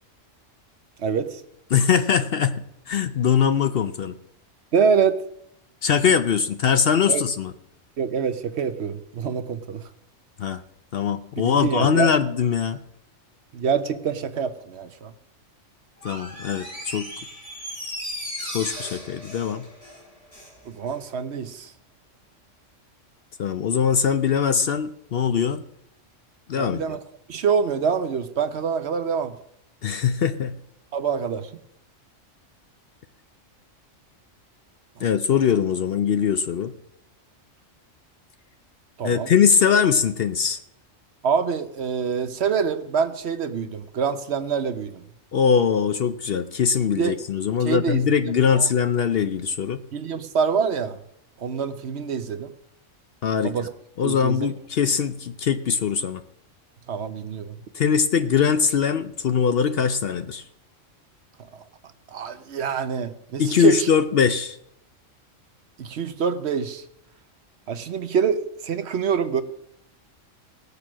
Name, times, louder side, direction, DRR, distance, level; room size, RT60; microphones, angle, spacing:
voice 1, 1.0-1.4 4.7-5.2 7.1-7.2 8.0-9.8 11.4-12.1 13.5-15.1 20.6-21.7 26.5-27.0 27.3-29.4 30.9-31.5 35.0-35.1 39.0-39.3 41.2-45.0 46.9-47.2 47.6-48.0 48.5-48.6 49.9-51.0 51.4-52.5 53.4-53.7 54.0-54.5 56.9-57.5 61.5-61.6 62.1-63.9 65.8-66.8 67.7-69.4, right 6 dB, 60° right, 10 dB, 1.0 m, -25 dB
voice 2, 1.7-2.5 2.9-4.1 5.8-7.5 10.4-10.6 10.9-12.8 16.0-17.1 18.5-19.6 23.4-25.6 26.5-27.0 29.8-30.5 35.0-36.7 39.0-40.6 45.3-49.8 53.2-53.7 54.0-56.2 57.7-60.4 63.4-64.6, left 7 dB, 60° left, 10 dB, 0.7 m, -21 dB
Door, 16.0-20.6 20.9-21.0, equal, 25° left, 7.2 m, -36 dB
17.5 x 6.8 x 6.1 m, 0.77 s
omnidirectional pair, 1.3 m